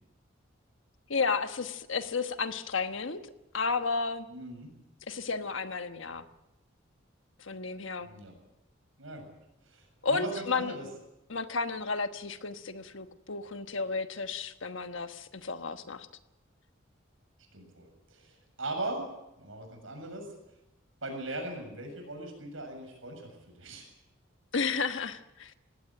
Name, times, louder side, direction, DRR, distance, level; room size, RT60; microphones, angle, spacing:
voice 1, 1.1-3.2 3.5-4.3 5.1-6.2 7.4-8.1 10.0-10.7 11.3-16.1 24.5-25.5, left 4 dB, 80° left, 9 dB, 1.2 m, -32 dB
voice 2, 4.3-4.7 8.0-8.4 9.0-9.3 9.7-10.9 17.5-19.0 19.4-20.3 21.0-23.3 23.6-23.9, right 2 dB, 90° right, 4 dB, 7.3 m, -39 dB
19.5 x 16.5 x 9.1 m, 0.92 s
head